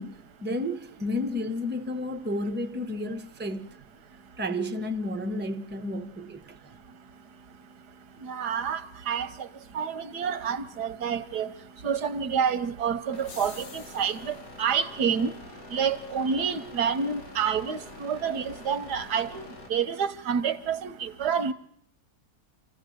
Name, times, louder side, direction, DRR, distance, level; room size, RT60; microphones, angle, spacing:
voice 1, 0.0-3.7 4.4-6.6, left 1 dB, 10° right, 0.8 m, -32 dB
voice 2, 8.2-9.5 9.7-11.5 11.8-15.3 15.7-19.4 19.7-21.5, right 7 dB, 90° right, 1.7 m, -28 dB
sound 1, 13.1-19.7, left 3 dB, 65° left, 2.5 m, -47 dB
sound 2, 13.1-14.5, left 4 dB, 45° left, 1.8 m, -47 dB
27.0 x 15.5 x 7.8 m
omnidirectional pair, 1.7 m